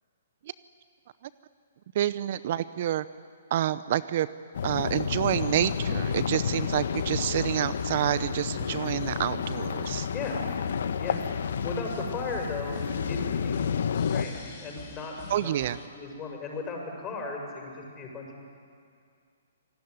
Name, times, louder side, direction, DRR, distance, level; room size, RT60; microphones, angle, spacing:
voice 1, 1.9-3.0 3.5-4.3 4.6-10.1 15.3-15.8, right 11 dB, 50° right, 16 dB, 0.7 m, -28 dB
sound 1, 4.5-14.3, left 7 dB, 70° left, 1.1 m, -30 dB
sound 2, 4.6-15.9, left 3 dB, 40° left, 6.2 m, -46 dB
voice 2, 10.1-10.5 11.0-12.8 13.1-13.6 14.1-15.7 15.9-18.4, left 3 dB, 20° left, 1 dB, 6.9 m, -36 dB
27.0 x 18.5 x 9.6 m, 2.2 s
hypercardioid pair, 135°, 0 cm